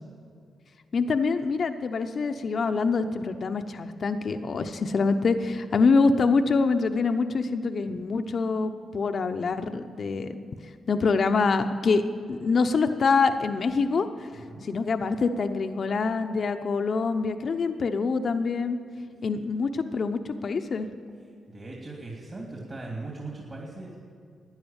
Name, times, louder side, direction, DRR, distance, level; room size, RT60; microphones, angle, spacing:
voice 1, 0.9-10.5 10.9-12.0 12.3-14.1 14.6-18.8 19.2-20.9, left 4 dB, 55° left, 8 dB, 0.8 m, -25 dB
voice 2, 14.3-14.6 21.5-24.0, right 2 dB, 35° right, -1 dB, 2.7 m, -39 dB
12.0 x 9.8 x 8.9 m, 2.3 s
cardioid pair, 70°, 0 cm